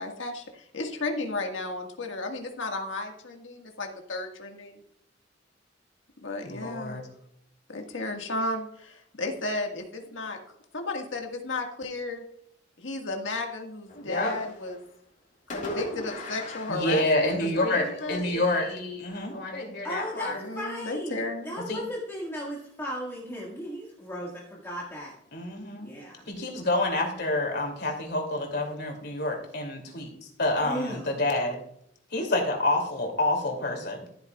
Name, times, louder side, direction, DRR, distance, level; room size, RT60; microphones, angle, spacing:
voice 1, 0.0-4.8 6.2-7.0 7.7-10.4 10.7-12.2 12.8-14.8 15.5-18.3 20.4-21.5, left 2 dB, 85° left, 3 dB, 1.7 m, -34 dB
voice 2, 6.4-7.1 13.9-14.4 15.6-16.0 16.7-20.4 21.7-21.8 25.3-25.9 26.3-30.1 30.4-31.6 32.1-34.0, left 2 dB, 60° left, 3 dB, 2.8 m, -28 dB
Fireworks, 13.9-14.9 15.5-17.7, left 2 dB, 45° left, 2.3 m, -41 dB
voice 3, 19.8-25.1 25.8-26.3 30.6-31.1, equal, 15° left, -5 dB, 1.8 m, -36 dB
13.5 x 9.0 x 2.4 m, 0.72 s
head